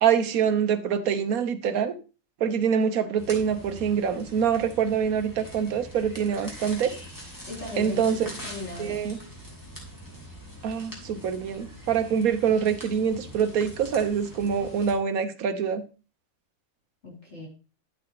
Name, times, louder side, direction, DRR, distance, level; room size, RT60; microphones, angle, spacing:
voice 1, 0.0-1.9 2.4-6.9 7.8-8.3 8.8-9.2 10.6-15.8, right 7 dB, 75° right, 10 dB, 1.3 m, -25 dB
sound 1, 3.2-15.0, equal, 15° left, 2.7 m, -43 dB
voice 2, 7.5-9.1 17.0-17.5, left 2 dB, 50° left, -4 dB, 3.7 m, -38 dB
10.5 x 8.4 x 2.9 m, 0.34 s
omnidirectional pair, 1.5 m